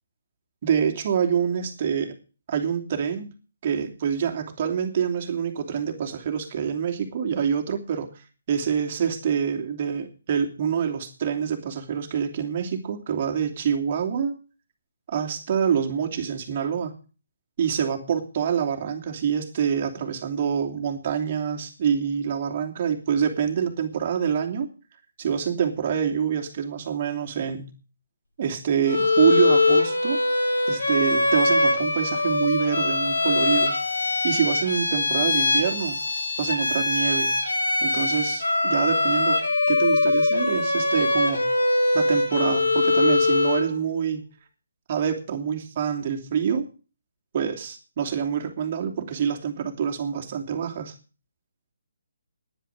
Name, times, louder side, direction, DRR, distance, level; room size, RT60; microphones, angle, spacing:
voice 1, 0.6-2.1 2.5-3.3 3.6-8.1 8.5-14.3 15.1-16.9 17.6-24.7 25.2-27.7 28.4-30.2 30.7-33.7 34.2-36.0 36.4-37.4 37.8-39.4 39.7-41.5 41.9-44.2 44.9-46.7 47.3-50.9, right 7 dB, 40° right, 3 dB, 2.9 m, -26 dB
Bowed string instrument, 28.9-43.7, left 2 dB, 75° left, 4.9 m, -22 dB
10.5 x 10.0 x 8.5 m, 0.37 s
figure-of-eight pair, 145°, 0 cm